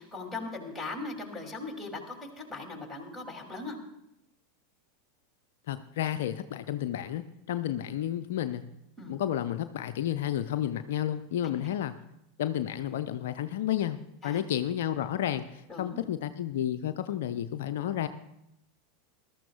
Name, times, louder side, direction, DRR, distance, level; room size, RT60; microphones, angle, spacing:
voice 1, 0.0-3.8 9.0-9.1 14.2-14.4 15.7-16.0, left 3 dB, ahead, 1 dB, 2.7 m, -39 dB
voice 2, 5.7-8.6 9.1-11.9 12.4-14.0 14.2-18.1, left 11 dB, 60° left, 10 dB, 0.5 m, -31 dB
20.5 x 13.0 x 2.4 m, 0.82 s
figure-of-eight pair, 85°, 0 cm